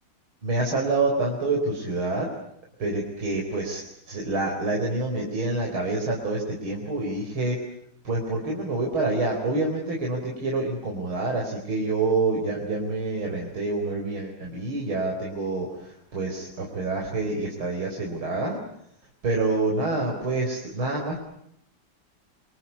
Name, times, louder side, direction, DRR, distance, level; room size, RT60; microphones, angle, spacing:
voice 1, 0.4-2.3 2.8-7.6 8.0-18.6 19.2-21.2, right 2 dB, 80° right, 0 dB, 5.2 m, -27 dB
27.0 x 26.0 x 8.4 m, 0.75 s
omnidirectional pair, 2.2 m